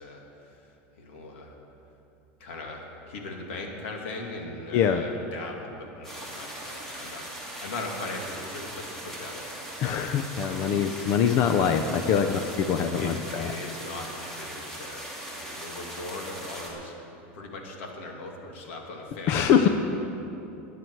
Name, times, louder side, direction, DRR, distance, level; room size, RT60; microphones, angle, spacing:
voice 1, 0.0-1.6 2.4-9.5 12.0-12.3 13.0-16.9 17.3-19.7, left 2 dB, 85° left, 1 dB, 2.4 m, -39 dB
voice 2, 4.7-5.0 9.8-12.3 12.7-13.5 19.3-19.7, left 8 dB, 45° left, 7 dB, 0.6 m, -23 dB
sound 1, 6.0-16.7, right 1 dB, 5° left, 2.6 m, -39 dB
19.0 x 9.3 x 4.7 m, 2.9 s
supercardioid pair, 150°, 6 cm